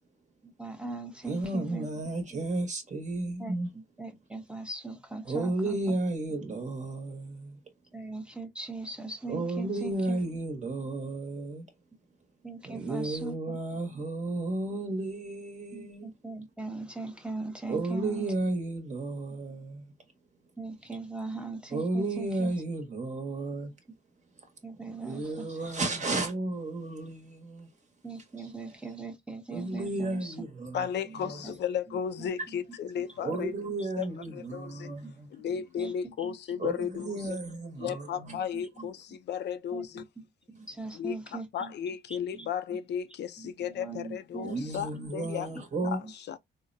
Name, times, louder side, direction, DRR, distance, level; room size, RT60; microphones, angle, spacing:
voice 1, 0.4-1.9 2.3-2.4 3.4-5.8 6.3-6.4 7.9-10.2 12.4-13.6 13.9-14.0 15.7-18.3 20.6-22.5 24.6-25.7 28.0-30.4 31.1-31.5 31.9-32.6 33.3-33.5 35.0-35.1 35.5-37.1 38.3-38.9 39.7-40.0 40.5-41.7 42.1-42.5 43.4-44.5 44.9-45.3 45.8-46.1, right 3 dB, 5° right, 0.8 m, -41 dB
voice 2, 1.2-3.7 5.3-7.6 9.3-11.6 12.6-16.1 17.7-19.9 21.7-23.7 24.9-27.7 29.5-30.8 31.2-31.4 33.2-35.3 36.6-38.4 44.4-46.0, right 2 dB, 35° right, 1.1 m, -33 dB
voice 3, 30.7-33.5 34.0-34.1 34.3-34.9 35.3-37.4 37.8-40.0 40.9-45.5 45.8-46.4, left 8 dB, 60° left, 0.5 m, -34 dB
3.8 x 2.1 x 2.6 m
cardioid pair, 90°, 20 cm